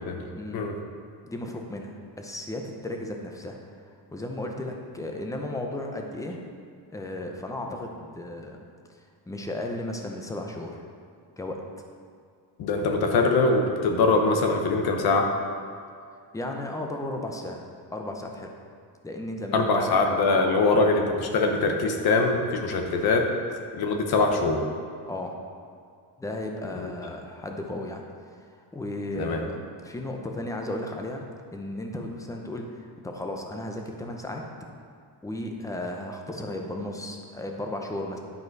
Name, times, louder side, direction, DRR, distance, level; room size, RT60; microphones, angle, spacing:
voice 1, 1.2-3.6 4.1-6.4 6.9-8.7 9.3-10.8 11.4-11.6 16.3-17.6 17.9-18.5 19.0-20.0 20.4-20.6 25.1-25.3 26.2-28.0 28.5-31.2 31.5-34.4 35.2-38.2, left 1 dB, 10° left, 2 dB, 0.6 m, -34 dB
voice 2, 12.6-15.3 19.5-23.3 23.7-24.6 26.8-26.9 29.1-29.4, left 3 dB, 60° left, 3 dB, 0.9 m, -23 dB
10.5 x 5.3 x 4.6 m, 2.3 s
cardioid pair, 160°, 42 cm